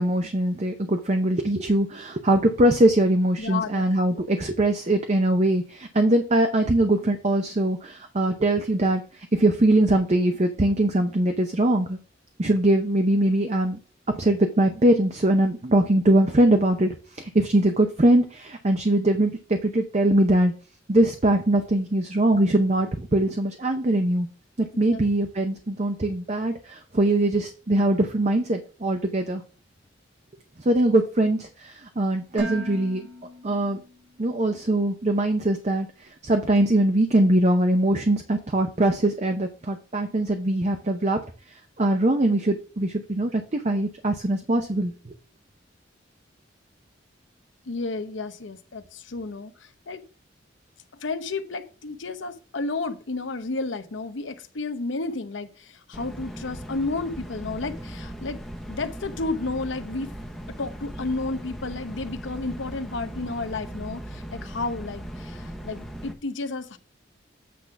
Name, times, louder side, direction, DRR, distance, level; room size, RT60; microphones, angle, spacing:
voice 1, 0.0-12.0 12.4-13.8 14.1-20.5 20.9-24.3 24.8-29.4 30.6-33.0 33.4-33.8 34.2-41.2 41.8-45.1, right 1 dB, 35° right, 0.7 m, -22 dB
voice 2, 3.4-3.8 4.1-4.2 24.7-25.0 47.7-50.0 50.9-58.4 58.7-60.1 60.6-66.8, left 3 dB, 80° left, 0.8 m, -32 dB
Dishes pots and pans, 32.4-34.4, equal, 75° right, 2.7 m, -38 dB
sound 1, 55.9-66.1, right 1 dB, ahead, 0.9 m, -38 dB
8.5 x 3.7 x 5.6 m
head